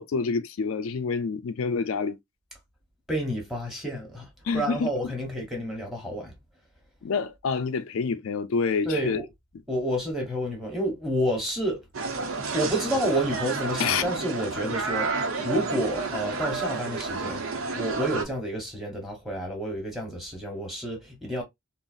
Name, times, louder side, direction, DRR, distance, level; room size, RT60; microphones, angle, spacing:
voice 1, 0.0-2.2 4.4-4.9 7.0-9.2 13.8-14.0, left 5 dB, 85° left, 0.4 m, -27 dB
voice 2, 3.1-6.4 8.8-9.3 9.7-11.8 12.5-21.4, right 1 dB, ahead, 1.1 m, -30 dB
sound 1, 11.9-18.2, right 4 dB, 90° right, 0.7 m, -31 dB
3.8 x 2.0 x 2.4 m
head